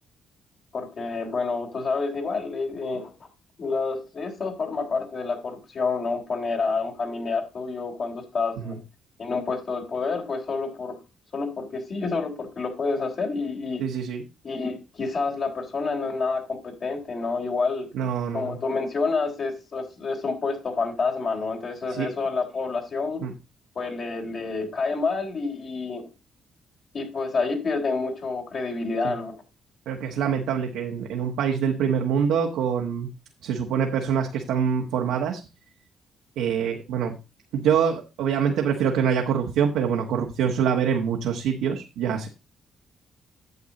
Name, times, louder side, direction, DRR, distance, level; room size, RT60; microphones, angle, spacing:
voice 1, 0.7-3.1 3.6-8.8 9.2-11.0 11.3-13.8 14.4-17.9 18.3-23.2 23.8-26.1 26.9-29.4, left 4 dB, 55° left, 2 dB, 3.6 m, -28 dB
voice 2, 13.8-14.2 17.9-18.6 21.9-22.1 23.2-23.3 29.0-29.1 29.9-33.1 33.4-35.4 36.4-37.1 37.5-42.3, right 7 dB, 85° right, 2 dB, 1.2 m, -25 dB
9.5 x 7.3 x 3.9 m, 0.29 s
cardioid pair, 80°, 0 cm